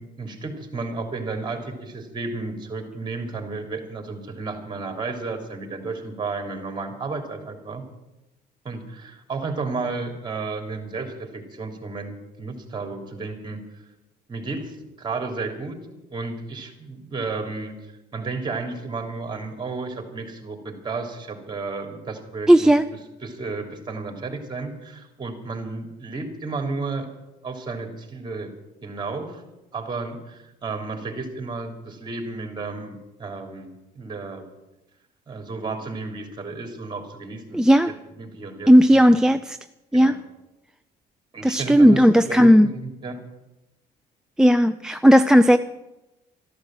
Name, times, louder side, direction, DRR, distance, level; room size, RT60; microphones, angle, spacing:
voice 1, 0.0-7.8 8.6-13.8 14.3-15.8 16.1-22.7 23.2-27.1 27.4-28.5 28.8-29.4 29.7-34.4 35.3-39.2 39.9-40.1 41.3-43.2, right 3 dB, 25° right, 3.2 m, -33 dB
voice 2, 22.5-22.8 37.5-37.9 38.7-39.6 39.9-40.1 41.4-42.7 44.4-45.6, equal, 5° right, 0.4 m, -15 dB
13.5 x 12.0 x 7.7 m
cardioid pair, 110°, 17 cm